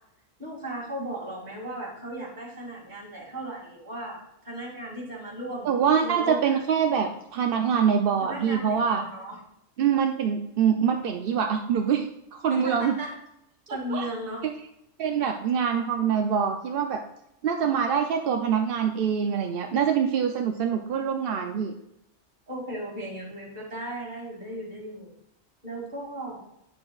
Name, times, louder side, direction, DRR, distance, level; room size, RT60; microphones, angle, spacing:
voice 1, 0.4-6.6 8.2-9.4 12.5-13.2 13.7-14.5 22.5-25.1 25.6-26.4, right 1 dB, 35° right, -4 dB, 2.5 m, -36 dB
voice 2, 5.7-9.0 9.8-13.0 13.9-14.1 15.0-17.0 17.4-21.7, right 7 dB, 60° right, 4 dB, 0.6 m, -24 dB
8.7 x 6.7 x 2.4 m, 0.81 s
omnidirectional pair, 1.3 m